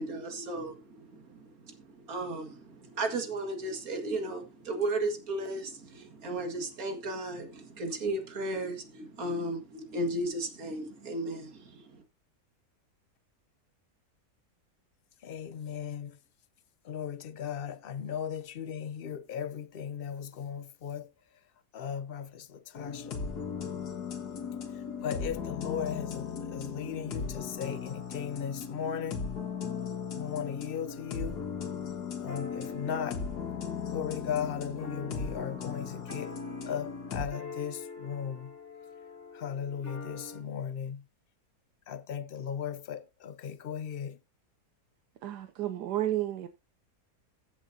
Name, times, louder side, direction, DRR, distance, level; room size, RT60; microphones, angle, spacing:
voice 1, 0.0-12.0, right 2 dB, 60° right, 2.4 m, -35 dB
voice 2, 15.2-16.1 16.9-21.1 21.7-23.2 25.0-29.2 30.1-31.4 32.2-33.2 33.9-36.3 36.6-38.5 39.3-41.0 41.9-44.2, left 8 dB, 60° left, 0.6 m, -37 dB
sound 1, 22.7-37.3, left 6 dB, 75° left, 2.0 m, -37 dB
sound 2, 30.9-40.4, left 3 dB, 10° left, 2.4 m, -46 dB
voice 3, 45.2-46.5, right 13 dB, 80° right, 1.3 m, -31 dB
15.0 x 7.3 x 2.7 m
omnidirectional pair, 1.7 m